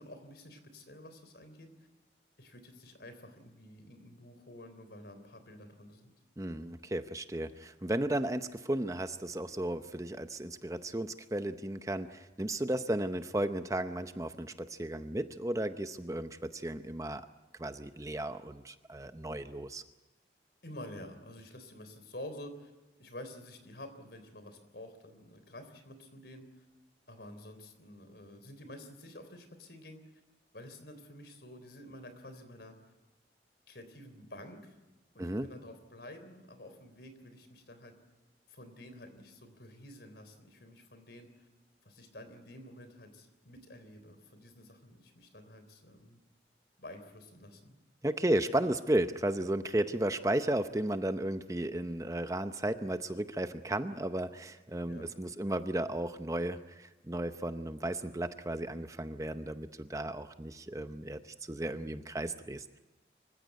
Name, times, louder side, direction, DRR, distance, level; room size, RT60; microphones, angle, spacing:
voice 1, 0.0-1.7 2.4-6.1 20.6-22.7 23.0-26.7 27.1-30.0 30.5-32.8 33.7-34.7 35.1-37.9 38.5-41.5 41.9-46.2 46.8-47.8 54.9-55.1, left 1 dB, 70° left, 9 dB, 3.7 m, -50 dB
voice 2, 6.4-17.2 17.6-19.8 35.2-35.5 48.0-61.2 61.5-62.8, right 1 dB, 20° right, 10 dB, 0.7 m, -34 dB
25.0 x 16.0 x 9.2 m, 1.2 s
head